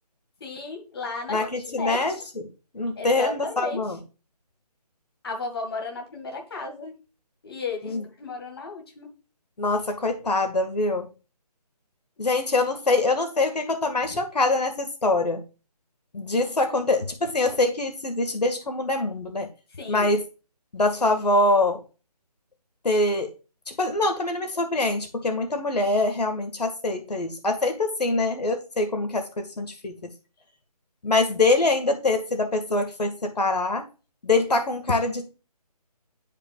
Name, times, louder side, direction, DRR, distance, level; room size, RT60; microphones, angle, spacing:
voice 1, 0.4-2.2 3.0-3.8 5.2-6.9 7.4-9.1 14.1-14.2 19.7-20.2, left 3 dB, 35° left, 1.9 m, -34 dB
voice 2, 1.3-2.5 2.7-4.0 7.8-8.0 9.6-11.1 12.2-15.4 16.1-19.5 19.9-20.2 20.7-21.8 22.8-23.3 23.7-29.9 31.0-33.8 34.2-35.3, left 2 dB, 80° left, 1.8 m, -24 dB
10.5 x 5.1 x 2.4 m
figure-of-eight pair, 170°, 20 cm